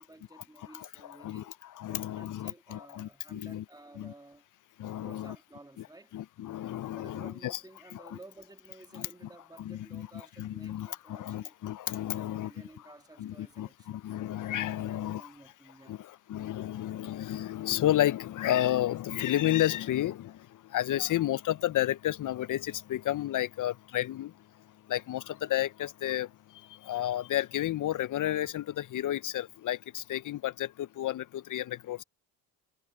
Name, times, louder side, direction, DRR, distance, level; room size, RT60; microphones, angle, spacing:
voice 1, 0.0-1.5 1.9-4.4 5.0-6.1 6.9-11.5 12.1-14.0 14.8-16.0, right 2 dB, 10° right, 2.5 m, -53 dB
voice 2, 0.7-3.6 4.0-4.1 4.8-5.4 6.1-7.6 7.9-8.2 8.9-9.1 9.6-10.1 10.4-12.5 13.2-15.3 15.9-20.3 20.7-24.3 24.9-26.3 26.8-32.0, left 13 dB, 45° left, 0.7 m, -32 dB
supercardioid pair, 75°, 46 cm